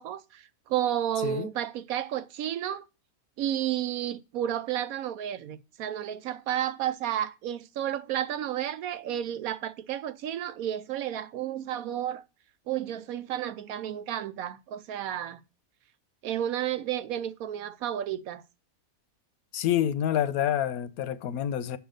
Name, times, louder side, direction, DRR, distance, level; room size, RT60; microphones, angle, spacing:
voice 1, 0.0-2.8 3.4-12.2 12.7-15.4 16.2-18.4, right 11 dB, 75° right, 1.0 m, -32 dB
voice 2, 19.5-21.8, left 10 dB, 80° left, 1.1 m, -27 dB
7.1 x 5.6 x 6.3 m
omnidirectional pair, 1.5 m